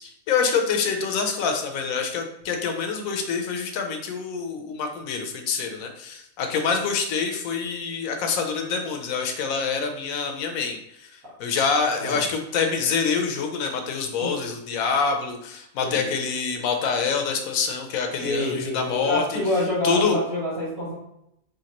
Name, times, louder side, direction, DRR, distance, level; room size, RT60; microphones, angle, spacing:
voice 1, 0.0-10.8 11.4-19.4 19.8-20.2, left 5 dB, 70° left, 4 dB, 1.1 m, -26 dB
voice 2, 18.2-20.9, left 1 dB, 85° right, -9 dB, 2.2 m, -27 dB
5.1 x 3.4 x 2.9 m, 0.77 s
omnidirectional pair, 1.6 m